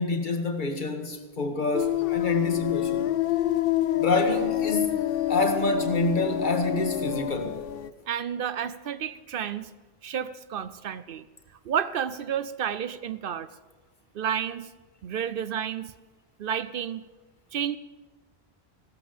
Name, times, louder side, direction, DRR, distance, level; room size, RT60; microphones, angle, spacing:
voice 1, 0.0-3.1 4.0-4.9 5.3-7.6, left 2 dB, 50° left, 1.5 m, -27 dB
sound 1, 1.7-7.9, left 13 dB, 65° left, 0.8 m, -27 dB
voice 2, 8.1-9.7 10.0-11.3 11.6-13.5 14.1-14.7 15.0-15.9 16.4-17.1 17.5-17.8, right 8 dB, 65° right, 0.8 m, -31 dB
16.5 x 13.5 x 5.1 m
omnidirectional pair, 1.1 m